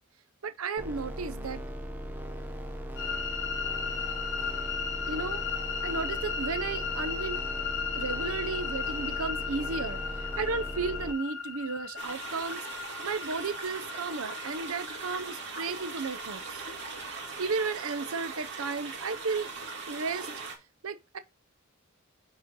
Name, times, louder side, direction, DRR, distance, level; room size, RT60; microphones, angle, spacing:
voice 1, 0.4-1.6 5.1-5.4 5.8-7.4 7.9-10.0 10.4-12.6 13.0-16.6 17.4-19.5 19.9-20.3 20.8-21.2, right 4 dB, 75° right, 0.7 m, -34 dB
sound 1, 0.8-11.1, equal, 10° right, 1.0 m, -38 dB
sound 2, 3.0-17.3, left 6 dB, 55° left, 2.6 m, -36 dB
sound 3, 12.0-20.6, right 4 dB, 60° right, 2.7 m, -40 dB
10.0 x 4.3 x 3.8 m
head